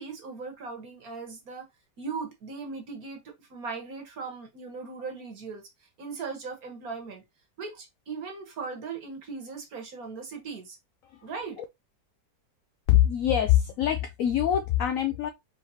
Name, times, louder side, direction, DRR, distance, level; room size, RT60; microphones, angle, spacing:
voice 1, 0.0-1.7 2.0-5.6 6.0-7.2 7.6-10.8 11.2-11.6, right 4 dB, 55° right, 1.6 m, -38 dB
voice 2, 12.9-15.3, left 11 dB, 75° left, 0.7 m, -23 dB
4.8 x 3.3 x 2.8 m
omnidirectional pair, 1.9 m